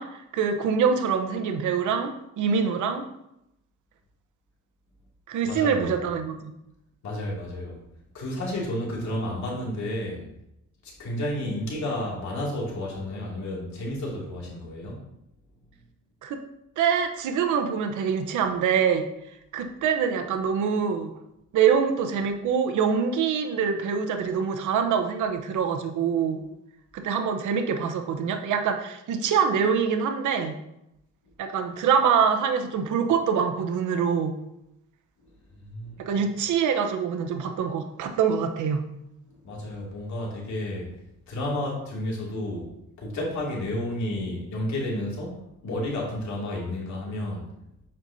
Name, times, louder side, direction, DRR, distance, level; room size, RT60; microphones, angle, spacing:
voice 1, 0.0-3.1 5.3-6.5 16.2-16.4 16.8-19.1 19.5-21.1 21.5-26.4 26.9-30.6 31.4-34.4 36.0-38.8, right 6 dB, 80° right, 6 dB, 0.9 m, -25 dB
voice 2, 5.4-5.9 7.0-7.8 8.1-10.2 10.8-15.0 35.5-36.2 39.4-40.9 41.3-42.7 43.0-45.4 45.6-47.5, left 1 dB, 70° left, -3 dB, 2.5 m, -31 dB
7.8 x 5.8 x 2.7 m, 0.83 s
cardioid pair, 90°, 30 cm